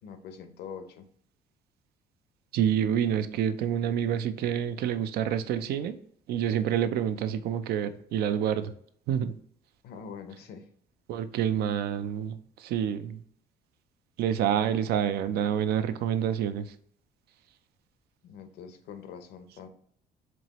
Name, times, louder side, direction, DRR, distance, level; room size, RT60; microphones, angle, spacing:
voice 1, 0.0-1.1 9.8-10.7 18.2-19.7, left 6 dB, 75° left, 8 dB, 0.6 m, -44 dB
voice 2, 2.5-6.0 6.3-8.7 9.1-9.3 11.1-12.3 12.6-13.2 14.2-16.7, right 9 dB, 70° right, 11 dB, 0.4 m, -27 dB
4.6 x 3.0 x 2.9 m, 0.62 s
cardioid pair, 110°, 17 cm